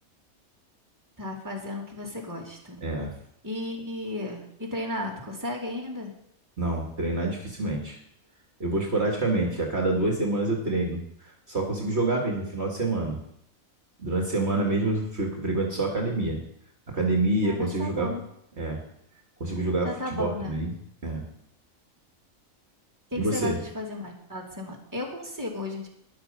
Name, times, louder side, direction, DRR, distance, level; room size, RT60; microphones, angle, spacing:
voice 1, 1.2-2.8 3.4-6.1 17.4-18.2 19.8-20.5 23.1-25.9, left 1 dB, 15° right, -2 dB, 2.9 m, -34 dB
voice 2, 6.6-8.0 8.6-11.0 11.5-13.2 14.0-16.4 16.9-18.2 18.6-18.8 19.4-20.7 21.0-21.3 23.2-23.6, right 2 dB, 50° right, 0 dB, 2.3 m, -27 dB
12.5 x 10.5 x 5.6 m, 0.73 s
omnidirectional pair, 1.5 m